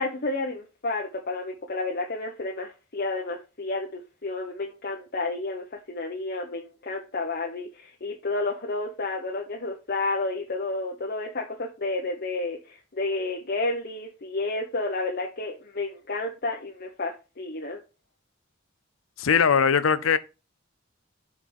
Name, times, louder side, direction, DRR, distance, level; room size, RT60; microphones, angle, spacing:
voice 1, 0.0-17.8, left 2 dB, 50° left, 1.0 m, -31 dB
voice 2, 19.2-20.2, left 6 dB, 85° left, 0.6 m, -20 dB
5.7 x 4.7 x 5.5 m
head